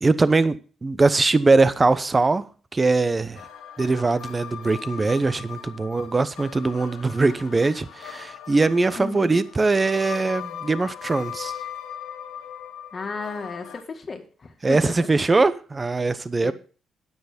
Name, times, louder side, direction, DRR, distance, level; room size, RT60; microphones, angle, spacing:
voice 1, 0.0-0.6 0.8-2.4 2.7-3.4 3.8-11.5 14.6-16.5, right 3 dB, 25° right, 0.9 m, -21 dB
sound 1, 3.3-13.8, left 9 dB, 85° left, 1.5 m, -39 dB
voice 2, 9.0-9.4 12.9-15.2 16.4-16.5, left 4 dB, 40° left, 2.0 m, -34 dB
9.3 x 8.2 x 5.2 m
cardioid pair, 90°, 0 cm